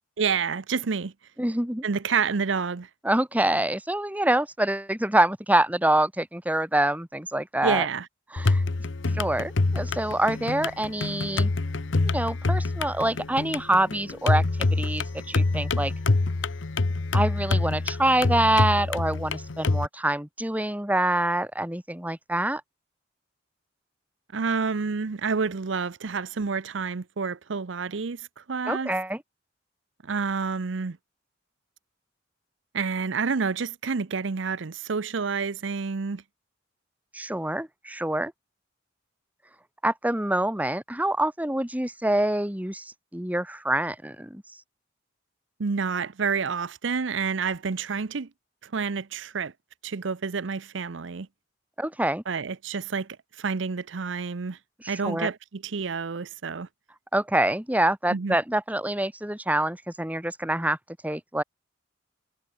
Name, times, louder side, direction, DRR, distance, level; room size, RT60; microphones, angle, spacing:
voice 1, 0.2-1.1 1.8-2.9 7.6-8.1 24.3-28.9 30.0-31.0 32.7-36.2 45.6-48.3 48.6-49.5 49.8-51.3 52.3-54.6 54.9-56.7 58.1-58.4, right 5 dB, 75° right, 0.7 m, -29 dB
voice 2, 1.4-1.8 3.0-7.9 8.3-8.6 9.1-11.5 12.0-14.4 14.7-15.9 17.1-22.6 28.7-29.2 37.1-38.3 39.8-44.4 51.8-52.2 54.8-55.3 57.1-60.8 61.0-61.4, right 1 dB, 10° right, 2.3 m, -26 dB
sound 1, 8.4-19.9, left 3 dB, 75° left, 0.9 m, -26 dB
head